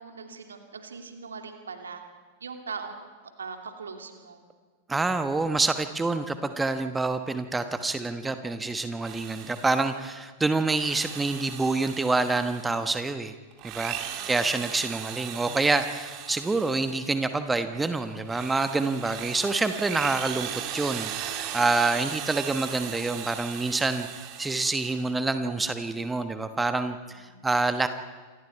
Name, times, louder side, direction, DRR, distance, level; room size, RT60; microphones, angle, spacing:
voice 1, 0.0-2.0 2.4-3.0 3.4-4.4 14.1-14.4 27.3-27.4, right 5 dB, 70° right, 4 dB, 2.8 m, -40 dB
voice 2, 4.9-13.3 13.6-13.9 14.3-27.9, right 3 dB, 10° right, 9 dB, 1.2 m, -27 dB
Drill, 8.9-10.0 10.6-12.9 13.5-17.2 17.7-25.2, right 10 dB, 40° right, 2.5 m, -38 dB
28.0 x 25.5 x 4.6 m, 1.5 s
figure-of-eight pair, 90°, 0 cm